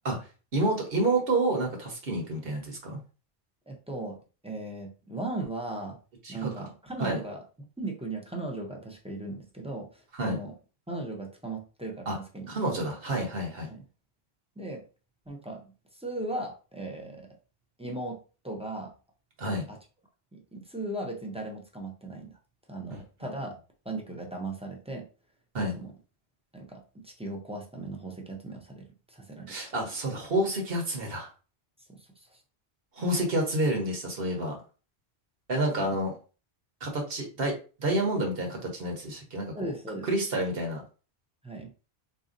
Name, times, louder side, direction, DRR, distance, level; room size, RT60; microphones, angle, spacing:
voice 1, 0.5-3.0 6.2-6.5 7.0-7.2 10.1-10.4 12.1-12.2 12.5-13.7 19.4-19.7 22.9-23.0 25.5-25.8 29.5-31.3 33.0-34.6 35.5-36.2 36.8-37.5 37.8-39.7 40.0-40.8, right 1 dB, 65° right, 1 dB, 1.3 m, -29 dB
voice 2, 3.7-4.2 4.4-6.0 6.3-7.4 7.8-10.5 10.9-12.8 13.7-13.8 14.6-14.8 15.3-15.7 16.0-17.3 17.8-18.2 18.4-18.9 19.7-19.8 20.3-22.3 22.7-23.6 23.8-25.1 25.7-25.9 26.5-29.6 31.9-32.1 35.8-35.9 39.5-40.1 41.4-41.7, right 2 dB, 5° right, 0 dB, 0.5 m, -37 dB
3.9 x 2.7 x 2.5 m, 0.35 s
omnidirectional pair, 1.1 m